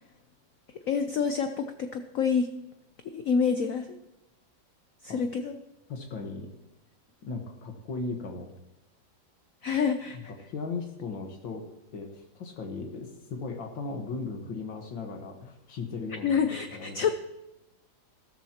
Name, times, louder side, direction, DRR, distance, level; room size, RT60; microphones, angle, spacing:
voice 1, 0.9-2.5 3.0-3.9 5.0-5.5 9.6-10.3 16.2-17.1, left 6 dB, 60° left, 7 dB, 0.9 m, -27 dB
voice 2, 5.9-6.5 7.2-8.5 10.1-11.6 11.9-17.0, left 4 dB, 75° left, 3 dB, 2.2 m, -37 dB
14.5 x 13.5 x 2.9 m, 0.94 s
omnidirectional pair, 2.1 m